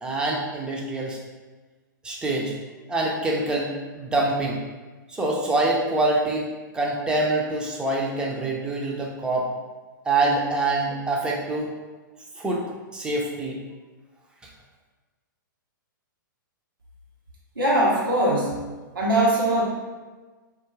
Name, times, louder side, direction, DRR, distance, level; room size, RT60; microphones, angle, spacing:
voice 1, 0.0-1.2 2.0-2.5 2.9-3.7 3.9-4.6 5.1-9.5 10.0-11.7 12.4-12.6 12.9-13.6, right 2 dB, 10° right, -2 dB, 0.4 m, -25 dB
voice 2, 17.6-18.6 18.9-19.6, right 1 dB, 85° right, -5 dB, 0.7 m, -21 dB
2.3 x 2.1 x 3.0 m, 1.3 s
figure-of-eight pair, 110°, 11 cm